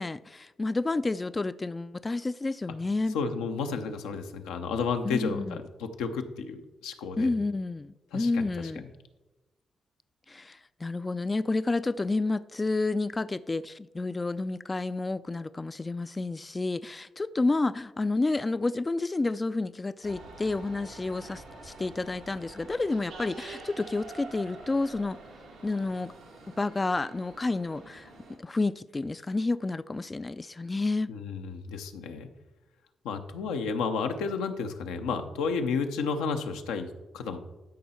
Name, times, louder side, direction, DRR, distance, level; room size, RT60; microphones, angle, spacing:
voice 1, 0.0-3.2 5.0-5.6 7.2-8.8 10.3-25.2 25.6-26.1 26.6-28.1 28.4-31.1, left 3 dB, 30° left, 0.3 m, -30 dB
voice 2, 3.1-7.3 8.1-8.5 8.8-8.9 31.1-32.3 33.0-37.4, left 5 dB, 90° left, 0.7 m, -32 dB
sound 1, 20.0-28.4, right 3 dB, 90° right, 1.8 m, -47 dB
12.5 x 5.4 x 4.3 m
supercardioid pair, 45°, 0 cm